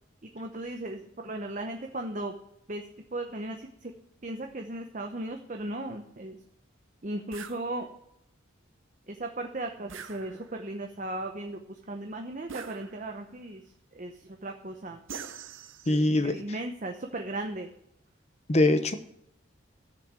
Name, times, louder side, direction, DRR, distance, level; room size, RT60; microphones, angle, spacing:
voice 1, 0.2-2.3 2.7-2.8 3.1-3.9 4.2-6.4 7.0-7.9 9.1-13.6 13.9-15.0 15.9-17.7, right 2 dB, 40° right, 4 dB, 0.8 m, -36 dB
sound 1, 7.3-7.6 9.9-10.7 12.5-13.3 15.1-16.2, right 6 dB, 75° right, 0.8 m, -43 dB
voice 2, 15.9-16.4 18.5-19.0, left 2 dB, 35° left, 9 dB, 0.8 m, -22 dB
11.5 x 6.6 x 7.4 m, 0.79 s
head